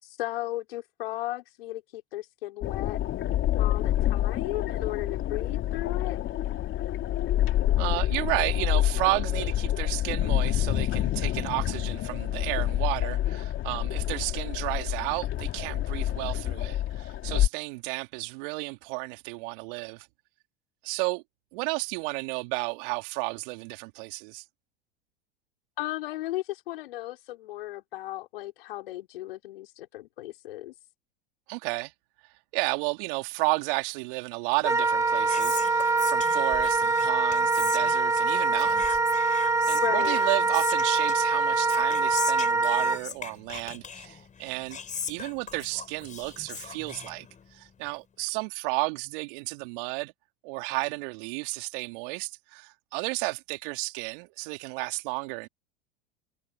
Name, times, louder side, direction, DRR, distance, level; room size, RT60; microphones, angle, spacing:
voice 1, 0.0-3.0 3.6-6.2 25.8-30.7 39.7-40.2, left 16 dB, 70° left, 5.6 m, -35 dB
sound 1, 2.6-17.5, left 13 dB, 40° left, 3.3 m, -27 dB
voice 2, 7.8-20.1 20.8-21.2 21.5-24.4 31.5-31.9 32.5-39.4 39.7-44.8 45.1-47.3 47.5-50.1 50.4-55.5, right 29 dB, 60° right, 3.2 m, -32 dB
Wind instrument woodwind instrument, 34.6-43.0, right 3 dB, 10° right, 1.5 m, -24 dB
Whispering, 34.8-47.7, left 6 dB, 25° left, 6.4 m, -40 dB
hypercardioid pair, 85°, 30 cm